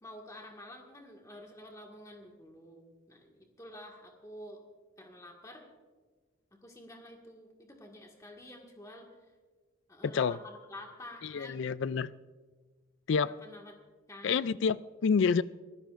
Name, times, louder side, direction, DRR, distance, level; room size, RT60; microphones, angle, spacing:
voice 1, 0.0-4.6 5.0-5.7 6.5-9.1 9.9-11.7 13.2-13.7 14.1-14.4, left 1 dB, 15° left, 1.8 m, -49 dB
voice 2, 10.0-10.4 11.2-12.1 13.1-13.4 14.2-15.4, left 5 dB, 60° left, 0.3 m, -28 dB
23.5 x 16.0 x 2.5 m
head